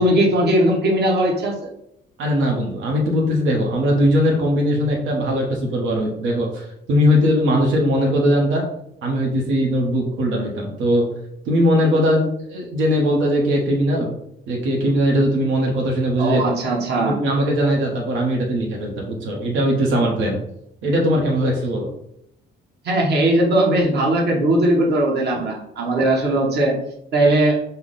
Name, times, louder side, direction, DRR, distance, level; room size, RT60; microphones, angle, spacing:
voice 1, 0.0-1.7 16.2-17.2 22.8-26.8 27.1-27.6, right 1 dB, 55° right, -1 dB, 1.2 m, -19 dB
voice 2, 2.2-8.6 9.0-11.1 11.5-14.1 14.5-16.4 17.0-20.4 20.8-21.9, equal, 80° right, -1 dB, 1.1 m, -20 dB
5.5 x 2.1 x 3.9 m, 0.76 s
cardioid pair, 90°, 20 cm